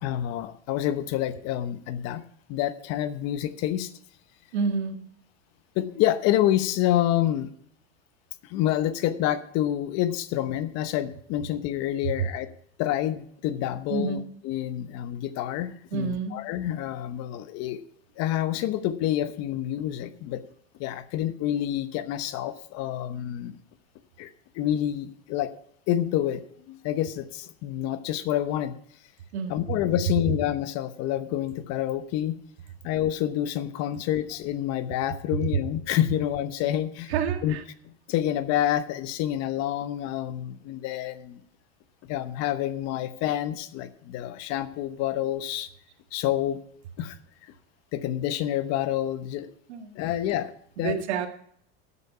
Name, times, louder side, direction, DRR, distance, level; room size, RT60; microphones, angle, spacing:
voice 1, 0.0-2.2 2.5-3.9 5.7-7.5 8.5-12.5 12.8-14.2 14.4-17.8 18.2-20.4 20.8-23.6 24.2-24.3 24.5-25.5 25.9-26.4 26.7-28.7 29.5-32.4 32.8-37.1 37.4-37.5 37.8-41.4 42.0-45.7 46.1-46.6 47.0-47.2 47.9-49.5 49.9-50.5 50.8-51.0, left 12 dB, 50° left, 12 dB, 1.0 m, -28 dB
voice 2, 4.5-5.0 13.9-14.2 15.9-16.4 29.3-29.6 37.1-37.6 49.7-49.9 50.8-51.3, right 6 dB, 85° right, 6 dB, 1.8 m, -28 dB
13.0 x 8.4 x 4.7 m, 0.66 s
supercardioid pair, 125°, 32 cm